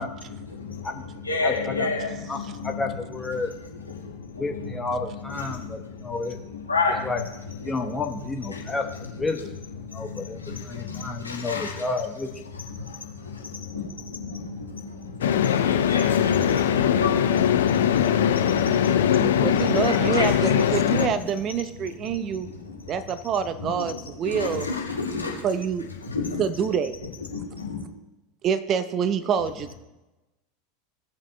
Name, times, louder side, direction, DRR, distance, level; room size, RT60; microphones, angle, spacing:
voice 1, 0.0-2.9 3.3-3.4 3.7-4.9 5.2-7.2 7.5-7.8 8.5-9.3 9.8-11.8 12.5-21.1 21.8-22.9 23.6-25.4 26.0-26.4 27.3-27.8, left 4 dB, 85° left, -1 dB, 1.6 m, -33 dB
voice 2, 1.4-1.9 2.3-2.4 2.6-3.5 4.4-6.4 7.0-7.2 7.6-8.9 9.1-9.5 9.9-12.3 19.0-19.5, left 3 dB, 15° left, 3 dB, 1.0 m, -30 dB
sound 1, 15.2-21.1, left 9 dB, 70° left, 0.5 m, -21 dB
voice 3, 19.4-22.5 22.9-24.7 25.4-25.9 26.4-27.0 28.4-29.7, right 7 dB, 40° right, 13 dB, 0.6 m, -26 dB
16.5 x 7.4 x 2.2 m, 1.0 s
figure-of-eight pair, 80°, 0 cm